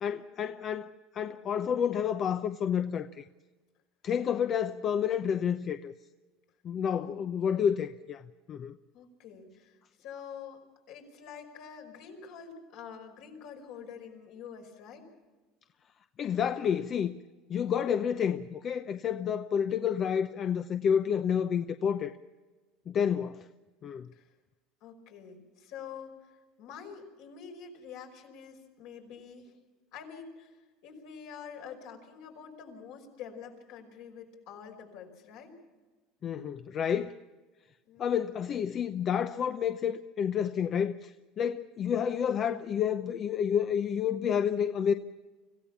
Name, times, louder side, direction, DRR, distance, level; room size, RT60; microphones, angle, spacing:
voice 1, 0.0-3.2 4.0-5.9 6.6-8.2 8.5-8.8 16.2-17.1 17.5-22.2 22.9-23.5 23.8-24.1 36.2-37.1 38.0-44.9, left 8 dB, 40° left, 0.7 m, -29 dB
voice 2, 8.9-15.1 24.1-24.3 24.8-26.3 26.6-29.5 29.9-35.6 37.9-38.2, left 7 dB, 70° left, 5.3 m, -47 dB
25.5 x 15.5 x 7.2 m
supercardioid pair, 110°, 0 cm